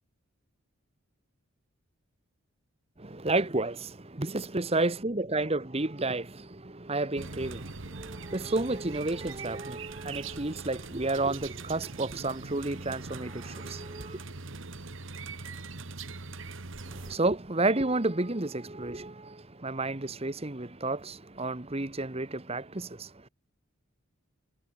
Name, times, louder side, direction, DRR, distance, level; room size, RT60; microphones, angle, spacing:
voice 1, 3.0-14.2 16.9-23.3, right 2 dB, 30° right, 1.3 m, -31 dB
sound 1, 7.1-17.2, right 4 dB, 60° right, 1.6 m, -42 dB
head